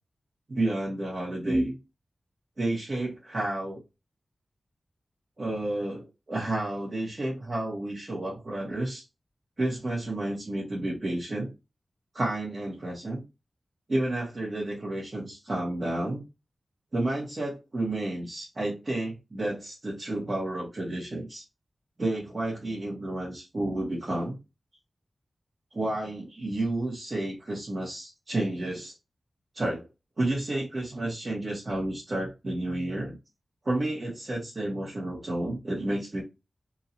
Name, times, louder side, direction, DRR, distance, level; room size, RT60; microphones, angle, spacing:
voice 1, 0.5-1.8 2.6-3.8 5.4-9.0 9.6-11.5 12.1-13.2 13.9-16.2 16.9-21.4 22.0-24.4 25.7-28.9 29.5-29.8 30.2-33.1 33.6-36.2, right 1 dB, 40° right, -6 dB, 1.7 m, -31 dB
3.7 x 2.9 x 2.7 m, 0.25 s
wide cardioid pair, 120°, 0 cm